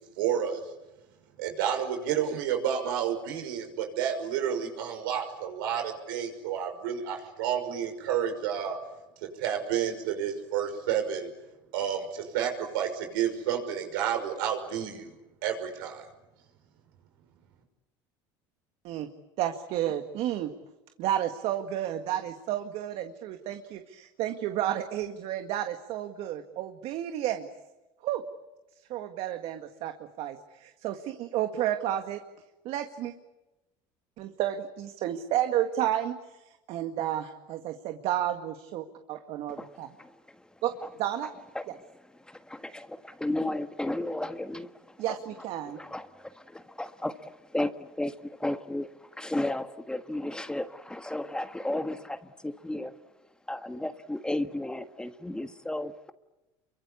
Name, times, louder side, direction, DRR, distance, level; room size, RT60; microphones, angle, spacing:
voice 1, 0.2-0.6 1.4-8.8 9.2-11.3 11.7-15.1 15.4-16.1, right 9 dB, 85° right, 5 dB, 6.0 m, -30 dB
voice 2, 19.4-20.5 21.0-27.5 28.0-28.2 28.8-32.2 32.7-33.1 34.2-39.9 40.6-40.7 41.0-41.3 45.0-45.8, right 12 dB, 60° right, 7 dB, 1.9 m, -31 dB
voice 3, 40.0-40.4 41.5-41.6 42.2-45.2 45.8-52.9 53.5-56.1, left 1 dB, 5° left, 9 dB, 1.6 m, -34 dB
29.0 x 24.0 x 8.5 m, 1.0 s
supercardioid pair, 95°, 11 cm